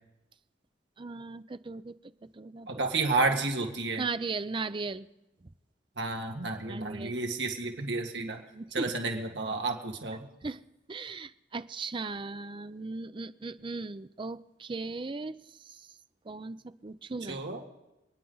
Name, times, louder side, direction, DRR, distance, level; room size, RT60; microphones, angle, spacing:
voice 1, 1.0-2.0 2.3-2.7 4.0-5.1 6.7-7.2 8.2-8.9 10.4-10.6 10.9-15.9 16.2-17.4, right 3 dB, 30° right, 13 dB, 0.5 m, -37 dB
voice 2, 2.7-4.0 6.0-8.4 8.7-10.2 17.3-17.6, right 3 dB, 70° right, 3 dB, 1.8 m, -31 dB
29.0 x 9.8 x 3.9 m, 0.95 s
head